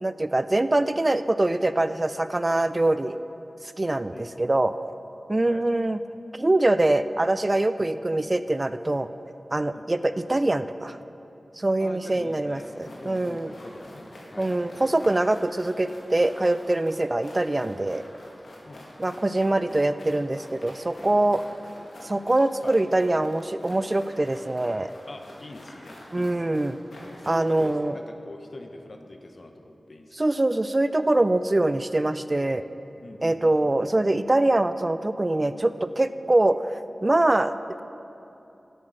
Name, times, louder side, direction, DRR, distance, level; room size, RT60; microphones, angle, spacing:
voice 1, 0.0-3.2 3.8-4.7 5.3-6.0 6.3-9.1 9.5-11.0 11.6-13.5 14.4-18.0 19.0-21.4 22.0-24.9 26.1-26.8 27.3-27.9 30.1-32.6 33.2-36.6 37.0-37.8, right 2 dB, 30° right, 12 dB, 0.3 m, -23 dB
voice 2, 11.8-14.9 18.6-18.9 19.5-19.7 21.1-21.3 22.6-22.8 25.1-26.6 27.0-30.3 33.0-33.4 33.8-34.0, left 2 dB, 55° left, 4 dB, 1.0 m, -44 dB
sound 1, 12.6-27.7, left 1 dB, 85° left, 1.9 m, -47 dB
10.0 x 8.6 x 6.4 m, 2.8 s
wide cardioid pair, 60°, 0 cm